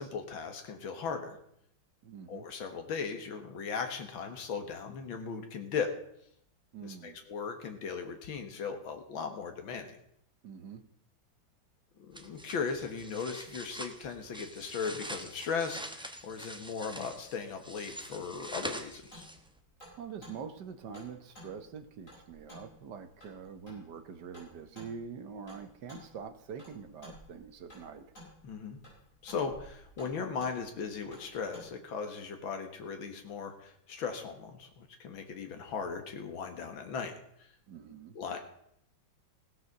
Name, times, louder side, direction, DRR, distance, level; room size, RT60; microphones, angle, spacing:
voice 1, 0.0-1.4 2.3-5.9 6.8-10.0 12.0-19.2 28.4-28.8 29.2-37.1 37.4-37.5 38.1-38.4, left 5 dB, 90° left, 5 dB, 2.2 m, -37 dB
voice 2, 2.0-2.5 6.7-7.2 10.4-10.8 20.0-28.1 37.7-38.1, right 6 dB, 65° right, 10 dB, 1.6 m, -45 dB
sound 1, 12.1-19.6, right 1 dB, 5° right, 0.4 m, -45 dB
sound 2, 18.3-31.7, left 1 dB, 40° left, 6.7 m, -54 dB
16.5 x 7.9 x 6.6 m, 0.73 s
omnidirectional pair, 2.1 m